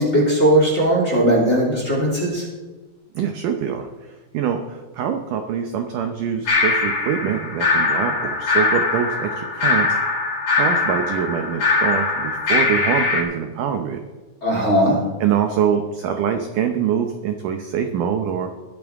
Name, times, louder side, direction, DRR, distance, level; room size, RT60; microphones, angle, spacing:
voice 1, 0.0-2.4 14.4-15.0, right 1 dB, 20° left, -4 dB, 2.7 m, -18 dB
voice 2, 3.2-9.9 10.5-14.0 15.2-18.5, right 8 dB, 80° right, 6 dB, 1.9 m, -24 dB
sound 1, 6.5-13.2, left 3 dB, 40° left, 2.2 m, -21 dB
22.0 x 8.8 x 3.6 m, 1.2 s
omnidirectional pair, 4.8 m